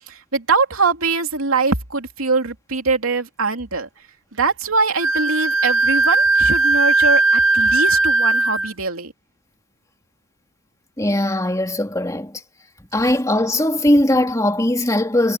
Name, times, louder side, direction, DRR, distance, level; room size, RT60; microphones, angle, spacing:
voice 1, 0.1-3.9 4.4-9.1, right 4 dB, 80° right, 2.9 m, -22 dB
Wind instrument woodwind instrument, 5.0-8.7, right 3 dB, 60° right, 1.5 m, -17 dB
voice 2, 11.0-12.4 12.9-15.4, left 1 dB, 15° left, 2.8 m, -19 dB
head